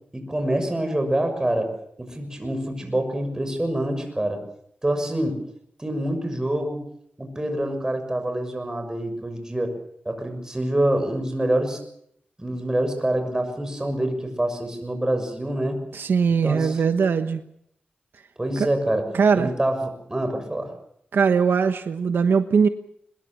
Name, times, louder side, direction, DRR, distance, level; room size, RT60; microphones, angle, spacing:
voice 1, 0.1-1.7 2.0-4.4 4.8-5.4 5.8-6.8 7.2-9.8 10.0-11.8 12.4-15.8 16.4-16.8 18.4-19.1 19.4-20.7, right 1 dB, 15° right, 6 dB, 6.5 m, -26 dB
voice 2, 15.9-17.4 18.6-18.7 19.1-19.5 21.1-22.7, right 5 dB, 80° right, 8 dB, 1.2 m, -20 dB
23.0 x 21.0 x 7.3 m, 0.70 s
wide cardioid pair, 95°, 4 cm